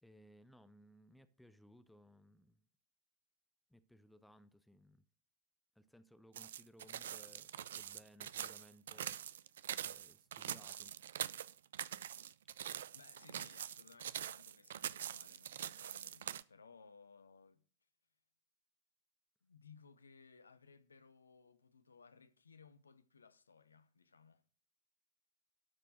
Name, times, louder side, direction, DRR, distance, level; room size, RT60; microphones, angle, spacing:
voice 1, 0.0-2.6 3.7-5.0 5.8-9.5 9.8-10.9, equal, ahead, 0.7 m, -63 dB
sound 1, 6.3-16.4, right 10 dB, 60° right, 0.4 m, -44 dB
voice 2, 12.9-17.6 19.4-24.4, left 5 dB, 75° left, 0.8 m, -62 dB
12.0 x 4.5 x 6.4 m
figure-of-eight pair, 90°, 0 cm